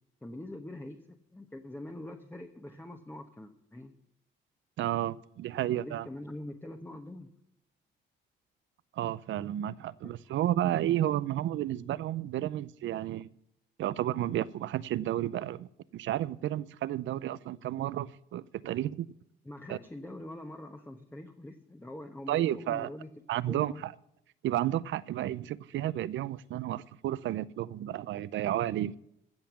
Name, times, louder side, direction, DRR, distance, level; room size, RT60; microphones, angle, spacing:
voice 1, 0.2-3.9 4.9-5.1 5.6-7.3 10.0-10.4 19.4-23.1 23.4-23.9, left 1 dB, 10° left, 1.1 m, -44 dB
voice 2, 4.8-6.1 9.0-13.3 13.8-15.7 15.9-19.1 19.7-19.8 22.3-22.9 23.3-23.9 24.4-29.0, right 12 dB, 70° right, 0.6 m, -32 dB
16.0 x 5.8 x 7.1 m
cardioid pair, 90°, 20 cm